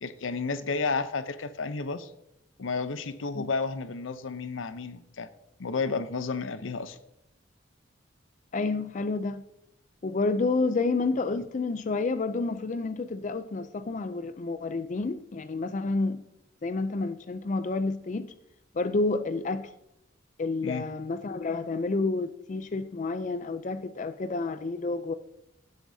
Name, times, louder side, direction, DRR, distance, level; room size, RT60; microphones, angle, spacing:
voice 1, 0.0-2.1 2.6-5.3 5.6-7.0 20.6-20.8, left 4 dB, 90° left, 0.7 m, -32 dB
voice 2, 8.5-9.4 10.0-16.2 16.6-18.3 18.7-19.7 20.4-25.1, left 3 dB, 40° left, 0.4 m, -29 dB
16.5 x 8.1 x 2.7 m
head